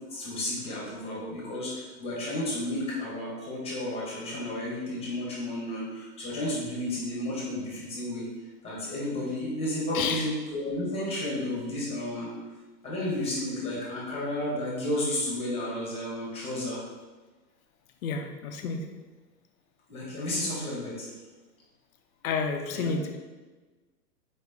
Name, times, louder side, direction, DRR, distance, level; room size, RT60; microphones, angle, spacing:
voice 1, 0.1-8.3 8.6-12.3 12.8-16.8 19.9-21.1 22.7-22.9, left 1 dB, 10° left, -6 dB, 1.2 m, -32 dB
voice 2, 9.9-10.3 18.0-18.9 22.2-23.2, left 5 dB, 55° left, 5 dB, 0.7 m, -30 dB
4.9 x 3.1 x 3.5 m, 1.3 s
hypercardioid pair, 145°, 50 cm